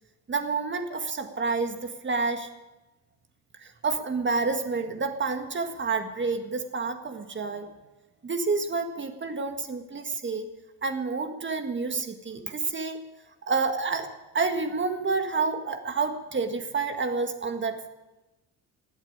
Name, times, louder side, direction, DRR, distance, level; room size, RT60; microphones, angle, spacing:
voice 1, 0.3-2.5 3.6-7.7 8.2-10.5 10.8-13.0 13.5-14.1 14.3-17.9, right 4 dB, 25° right, 7 dB, 1.7 m, -29 dB
15.5 x 8.4 x 9.9 m, 1.0 s
cardioid pair, 120°, 41 cm